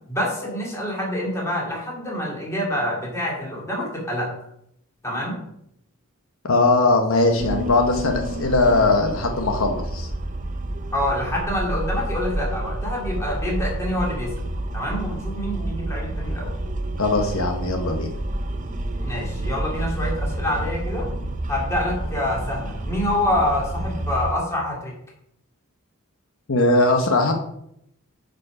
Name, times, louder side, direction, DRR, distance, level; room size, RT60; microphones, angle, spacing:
voice 1, 0.1-4.3 5.0-5.4 10.9-14.3 14.7-16.5 19.0-21.1 21.5-24.9, left 1 dB, 15° left, -3 dB, 2.5 m, -26 dB
voice 2, 6.4-10.1 17.0-18.1 26.5-27.3, left 2 dB, 65° left, 4 dB, 1.0 m, -20 dB
sound 1, 7.4-24.3, right 1 dB, 35° right, 0.7 m, -29 dB
9.2 x 5.2 x 4.9 m, 0.76 s
head